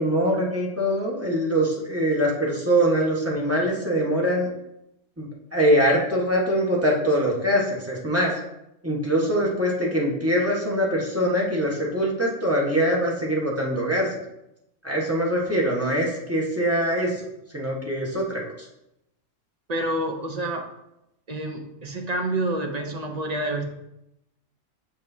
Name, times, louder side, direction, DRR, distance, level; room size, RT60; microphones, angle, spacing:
voice 1, 0.0-4.5 5.2-8.3 8.8-14.1 14.8-17.1 17.5-18.4, equal, 10° right, -4 dB, 1.3 m, -23 dB
voice 2, 3.3-3.7 19.7-20.7 21.3-23.6, right 1 dB, 40° right, 3 dB, 0.7 m, -28 dB
6.6 x 6.4 x 2.7 m, 0.86 s
omnidirectional pair, 1.3 m